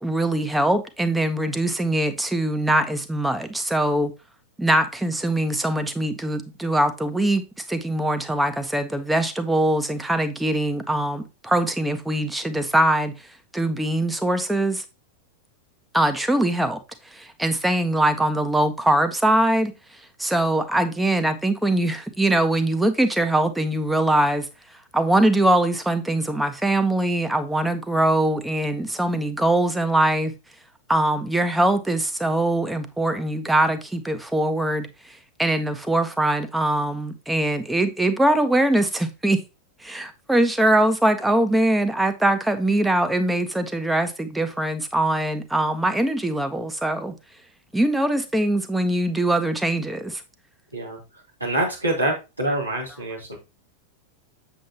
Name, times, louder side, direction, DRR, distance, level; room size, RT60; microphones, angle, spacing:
voice 1, 0.0-4.1 4.6-7.4 7.7-13.1 13.5-14.8 15.9-16.8 17.1-19.7 20.2-24.5 24.9-30.3 30.9-39.4 39.8-47.1 47.7-50.2, right 1 dB, 5° right, 1.0 m, -22 dB
voice 2, 51.4-53.4, right 1 dB, 85° right, 3.4 m, -25 dB
7.6 x 7.3 x 2.9 m
figure-of-eight pair, 90°, 0 cm